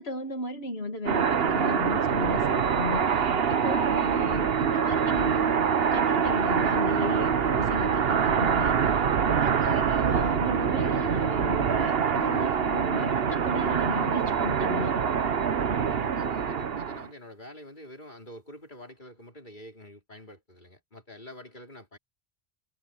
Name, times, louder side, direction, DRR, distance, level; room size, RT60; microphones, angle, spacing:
voice 1, 0.0-15.0, left 2 dB, 80° left, 2.4 m, -35 dB
sound 1, 1.1-17.1, right 7 dB, 70° right, 1.2 m, -25 dB
voice 2, 15.9-22.0, left 1 dB, 50° left, 4.8 m, -47 dB
omnidirectional pair, 1.0 m